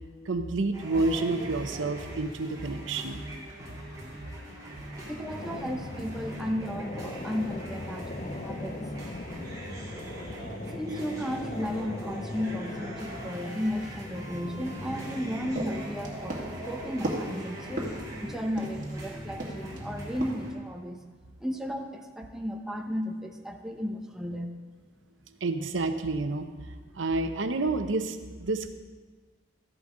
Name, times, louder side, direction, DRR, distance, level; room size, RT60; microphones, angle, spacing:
voice 1, 0.3-3.2 25.4-26.5 27.0-28.7, right 3 dB, 80° right, 8 dB, 0.7 m, -29 dB
sound 1, 0.7-20.5, right 1 dB, 20° right, 2.6 m, -41 dB
voice 2, 5.1-8.8 10.3-17.9 18.2-21.0 21.4-24.5, equal, 5° right, 2 dB, 0.8 m, -34 dB
sound 2, 5.4-15.6, left 3 dB, 35° left, 0.4 m, -41 dB
sound 3, 14.8-19.0 19.4-19.8 20.2-20.4, right 1 dB, 40° right, 2.2 m, -35 dB
13.5 x 11.0 x 3.8 m, 1.4 s
head